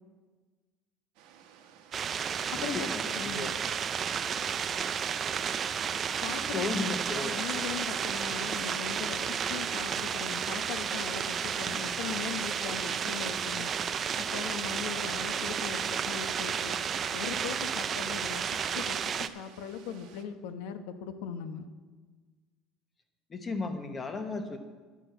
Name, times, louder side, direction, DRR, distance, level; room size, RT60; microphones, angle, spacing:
sound 1, 1.1-20.2, right 8 dB, 65° right, 1.0 m, -56 dB
sound 2, 1.9-19.3, right 7 dB, 25° right, 0.3 m, -32 dB
voice 1, 2.5-3.5 6.4-7.4 23.3-24.6, left 3 dB, 15° left, 6 dB, 0.9 m, -35 dB
voice 2, 3.2-3.5 6.2-9.2 9.5-13.7 14.2-16.8 17.1-18.4 18.7-21.7, left 7 dB, 80° left, 8 dB, 0.9 m, -39 dB
11.5 x 6.1 x 8.0 m, 1.4 s
cardioid pair, 175°, 0 cm